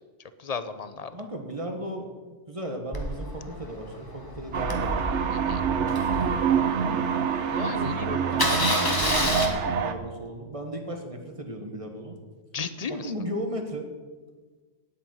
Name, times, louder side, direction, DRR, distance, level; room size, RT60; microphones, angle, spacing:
voice 1, 0.4-1.1 5.3-5.6 7.5-8.2 12.5-13.1, left 5 dB, 40° left, 12 dB, 0.7 m, -34 dB
voice 2, 1.1-2.1 2.5-5.2 5.7-7.1 7.7-12.2 12.9-13.9, right 1 dB, 25° right, 3 dB, 1.7 m, -36 dB
Engine starting, 2.9-7.1 7.6-7.7 7.9-8.0 8.3-9.5, left 1 dB, 20° left, 1.5 m, -29 dB
sound 1, 4.5-9.9, right 7 dB, 75° right, 1.2 m, -26 dB
9.4 x 8.8 x 9.4 m, 1.4 s
omnidirectional pair, 1.2 m